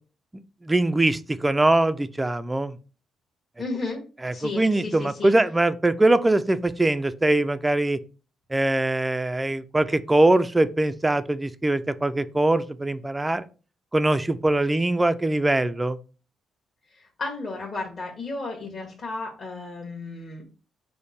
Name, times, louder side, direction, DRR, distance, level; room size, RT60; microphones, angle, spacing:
voice 1, 0.6-2.8 4.2-8.0 8.5-13.5 13.9-16.0, right 2 dB, 15° right, 13 dB, 0.3 m, -22 dB
voice 2, 3.6-4.0 4.3-5.3 16.9-20.4, left 3 dB, 40° left, -2 dB, 1.3 m, -33 dB
5.1 x 2.1 x 4.1 m, 0.35 s
cardioid pair, 90°, 0 cm